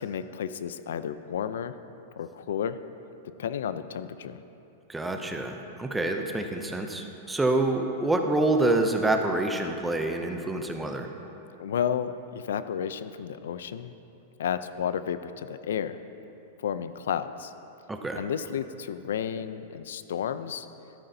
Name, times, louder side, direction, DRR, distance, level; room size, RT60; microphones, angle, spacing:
voice 1, 0.0-1.7 2.2-2.8 3.4-4.4 11.6-13.9 14.4-16.0 16.6-17.5 18.2-20.7, left 8 dB, 85° left, 12 dB, 0.4 m, -32 dB
voice 2, 4.9-11.1 17.9-18.2, right 2 dB, 5° right, 4 dB, 0.5 m, -27 dB
13.0 x 12.5 x 2.7 m, 2.9 s
supercardioid pair, 175°, 0 cm